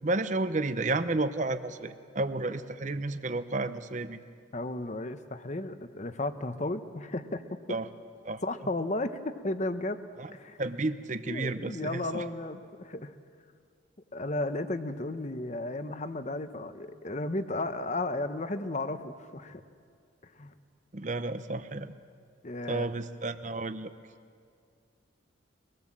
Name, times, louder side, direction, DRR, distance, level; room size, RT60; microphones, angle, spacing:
voice 1, 0.0-4.2 7.7-7.9 8.2-8.4 10.2-10.3 10.6-12.2 20.9-21.9 22.7-23.9, right 2 dB, 40° right, 11 dB, 0.8 m, -32 dB
voice 2, 4.5-7.6 8.4-10.0 10.3-10.6 11.3-13.1 14.1-19.6 20.2-20.5 22.4-22.9, left 2 dB, 35° left, 10 dB, 0.9 m, -34 dB
24.5 x 19.5 x 7.5 m, 2.2 s
head